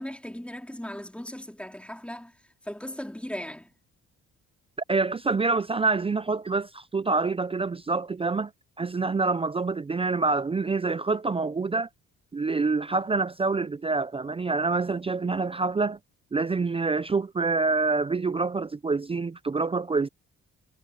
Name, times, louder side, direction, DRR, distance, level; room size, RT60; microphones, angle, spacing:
voice 1, 0.0-2.3 2.6-3.7, equal, 5° left, 3.4 m, -37 dB
voice 2, 4.9-8.5 8.8-11.9 12.3-16.0 16.3-20.1, right 3 dB, 20° right, 0.5 m, -26 dB
cardioid pair, 90°, 30 cm